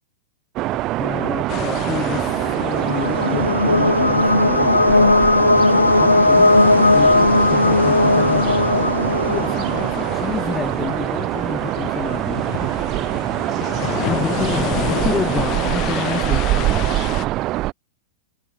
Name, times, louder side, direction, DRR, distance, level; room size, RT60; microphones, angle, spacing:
sound 1, 0.6-17.7, right 17 dB, 35° right, 3.6 m, -24 dB
voice 1, 1.0-5.2 5.7-6.5 6.9-9.0 9.3-12.7 14.1-16.9, left 7 dB, 20° left, 7.4 m, -29 dB
sound 2, 1.5-17.3, left 20 dB, 35° left, 5.3 m, -31 dB
sound 3, 2.4-10.2, left 2 dB, 85° left, 1.9 m, -17 dB
figure-of-eight pair, 100°, 0 cm